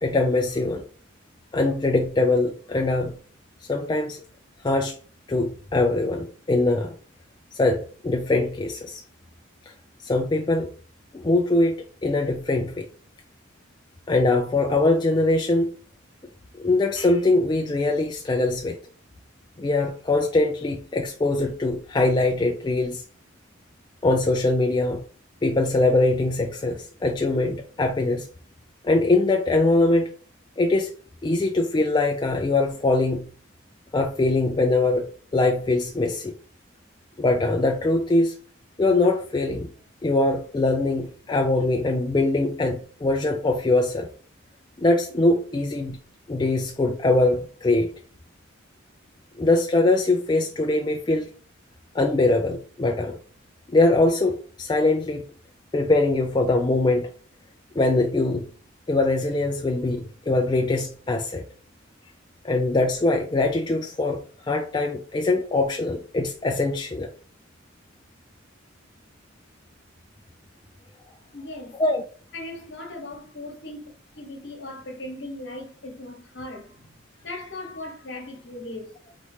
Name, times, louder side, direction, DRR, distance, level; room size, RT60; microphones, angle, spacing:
voice 1, 0.0-0.8 1.5-3.2 3.7-4.2 4.6-5.0 5.3-6.9 7.5-9.0 10.0-10.7 11.1-11.7 12.0-12.9 14.1-15.7 16.6-18.8 19.6-23.0 24.0-25.0 25.4-28.3 28.8-30.1 30.6-30.9 31.2-33.3 33.9-35.1 35.3-36.3 37.2-38.3 38.8-39.7 40.0-44.1 44.8-46.0 46.3-47.9 49.4-51.3 51.9-53.2 53.7-55.2 55.7-57.1 57.8-58.5 58.9-61.4 62.4-64.2 64.5-67.1 71.8-72.0, left 2 dB, 20° left, 0.3 m, -22 dB
voice 2, 71.3-71.8 72.3-73.9 74.1-76.7 77.2-79.0, left 2 dB, 60° left, 1.2 m, -38 dB
4.1 x 3.0 x 3.2 m
head